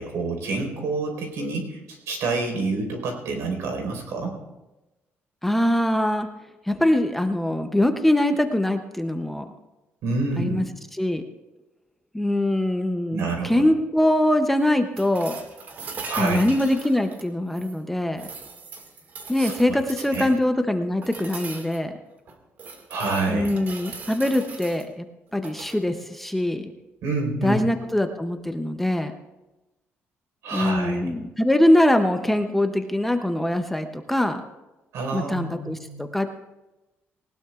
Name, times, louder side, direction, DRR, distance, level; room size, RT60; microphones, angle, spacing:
voice 1, 0.0-4.3 10.0-10.6 13.1-13.6 16.1-16.5 19.4-19.8 20.1-20.3 22.9-23.5 27.0-27.6 30.4-31.1 34.9-36.0, right 3 dB, 75° right, 3 dB, 4.3 m, -28 dB
voice 2, 5.4-6.3 6.7-9.5 10.4-10.6 10.9-11.2 12.1-15.4 16.2-18.2 19.3-21.9 23.3-25.1 25.3-26.7 27.4-29.1 30.5-34.4 35.1-36.3, left 1 dB, 5° left, 6 dB, 0.6 m, -23 dB
sound 1, 15.0-17.8 18.2-20.4 21.0-21.8 22.3-24.8 25.3-25.8 27.8-27.9, right 4 dB, 45° right, 1.8 m, -39 dB
19.5 x 19.0 x 2.4 m, 1.0 s
cardioid pair, 175°, 5 cm